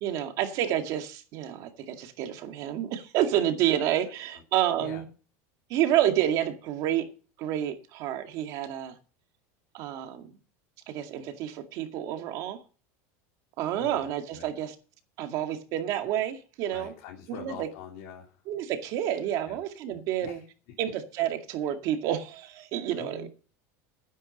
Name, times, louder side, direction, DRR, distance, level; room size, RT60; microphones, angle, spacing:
voice 1, 0.0-5.1 5.7-7.1 7.4-9.0 9.7-10.4 10.9-12.6 13.6-14.8 15.2-16.9 17.3-17.7 18.5-20.4 20.8-23.3, right 11 dB, 45° right, 2.1 m, -29 dB
voice 2, 13.8-14.5 16.7-18.4 19.5-19.6 20.2-20.4 22.9-23.3, left 7 dB, 60° left, 3.2 m, -44 dB
12.0 x 10.5 x 5.3 m
supercardioid pair, 160°, 8 cm